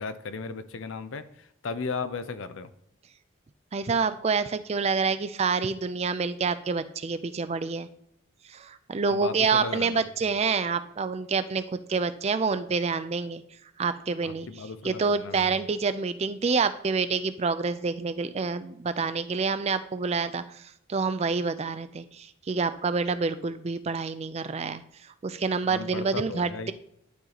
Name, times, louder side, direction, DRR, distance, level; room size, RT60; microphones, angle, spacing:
voice 1, 0.0-2.7 9.1-10.3 14.2-15.6 25.7-26.7, left 4 dB, 70° left, 12 dB, 0.5 m, -36 dB
voice 2, 3.7-7.9 8.5-11.6 11.9-13.4 13.8-14.5 14.8-20.4 20.9-24.8 25.2-26.7, right 4 dB, 30° right, 12 dB, 0.4 m, -27 dB
12.0 x 4.0 x 2.9 m, 0.76 s
head